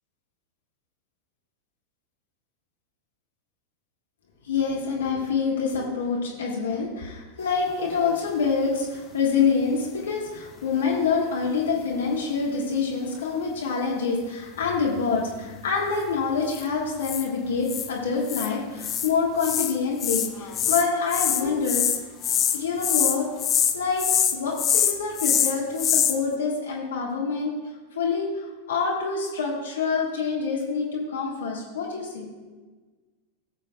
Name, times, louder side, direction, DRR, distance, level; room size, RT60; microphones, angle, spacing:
voice 1, 4.4-21.9 22.5-23.3 23.7-27.5 27.9-32.3, left 5 dB, 65° left, -3 dB, 1.5 m, -26 dB
sound 1, 7.8-8.5 14.6-15.0 16.5-16.6 17.0-17.2 17.7-17.9 18.3-18.5 18.8-19.1 19.4-19.7 20.0-26.2, left 9 dB, 25° left, 0.7 m, -24 dB
18.5 x 6.8 x 2.3 m, 1.3 s
figure-of-eight pair, 90°, 0 cm